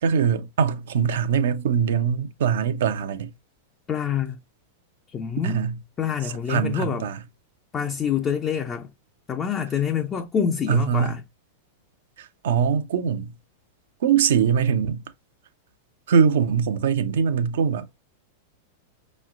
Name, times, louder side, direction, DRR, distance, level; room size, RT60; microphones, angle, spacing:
voice 1, 0.0-3.3 5.4-5.8 6.5-7.2 10.7-11.1 12.2-13.3 14.0-15.0 16.1-17.9, right 7 dB, 65° right, 0.6 m, -22 dB
voice 2, 3.9-4.4 5.1-5.6 6.0-7.1 7.7-8.9 9.3-11.2, left 8 dB, 25° left, 0.5 m, -26 dB
5.5 x 3.1 x 2.4 m
hypercardioid pair, 95°, 0 cm